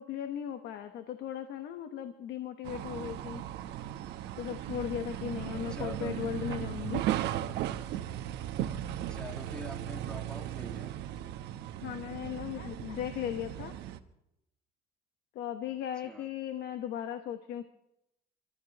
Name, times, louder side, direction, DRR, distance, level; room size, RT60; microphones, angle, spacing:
voice 1, 0.0-3.4 4.4-7.1 11.8-13.7 15.3-17.6, left 10 dB, 80° left, 8 dB, 1.2 m, -37 dB
sound 1, 2.6-14.0, right 12 dB, 85° right, 1.1 m, -37 dB
voice 2, 5.5-6.2 9.1-11.0 16.0-16.3, equal, 5° left, 5 dB, 2.0 m, -45 dB
29.5 x 14.0 x 3.0 m, 0.83 s
cardioid pair, 110°, 17 cm